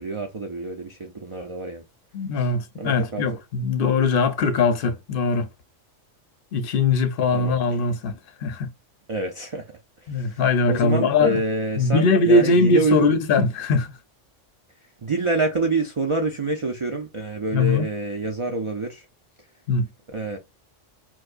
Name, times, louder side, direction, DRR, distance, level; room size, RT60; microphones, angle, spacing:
voice 1, 0.0-1.8 2.4-2.5 2.8-3.2 7.3-7.7 9.1-9.7 10.1-10.4 10.7-13.1 15.0-19.0 20.1-20.4, right 3 dB, 55° right, 0.3 m, -27 dB
voice 2, 2.1-5.5 6.5-8.7 10.1-11.4 11.8-13.9 17.5-17.9 19.7-19.9, left 3 dB, 55° left, 0.7 m, -21 dB
4.6 x 2.1 x 2.4 m
omnidirectional pair, 1.3 m